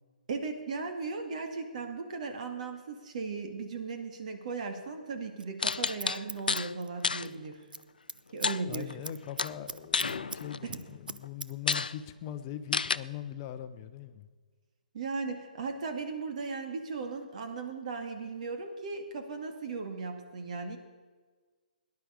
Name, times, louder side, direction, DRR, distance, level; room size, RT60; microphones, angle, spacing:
voice 1, 0.3-7.6 8.3-8.9 10.6-10.8 14.9-20.8, right 4 dB, 55° right, 5 dB, 2.1 m, -37 dB
Scissors, 5.4-7.4 7.6-10.4 10.7-11.8 12.1-12.2, right 4 dB, 85° right, 0.6 m, -42 dB
sound 1, 5.6-6.7 7.0-7.3 8.4-9.1 9.4-10.8 11.2-11.3 11.7-11.9 12.7-13.0, left 4 dB, 80° left, 0.4 m, -30 dB
voice 2, 8.6-14.3, left 10 dB, 35° left, 10 dB, 0.7 m, -41 dB
18.0 x 11.0 x 5.1 m, 1.4 s
figure-of-eight pair, 135°, 5 cm